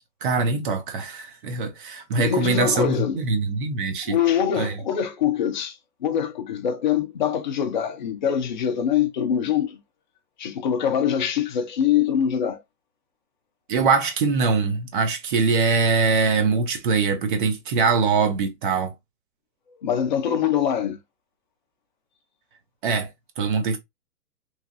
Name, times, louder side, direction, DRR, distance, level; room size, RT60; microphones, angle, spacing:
voice 1, 0.2-4.2 4.6-4.8 13.7-18.9 22.8-23.1 23.4-23.8, right 4 dB, 35° right, 0.6 m, -23 dB
voice 2, 2.2-3.2 4.1-5.8 6.0-9.8 10.4-12.6 19.8-21.0, left 9 dB, 30° left, 0.4 m, -23 dB
3.1 x 2.3 x 2.6 m
hypercardioid pair, 135°, 49 cm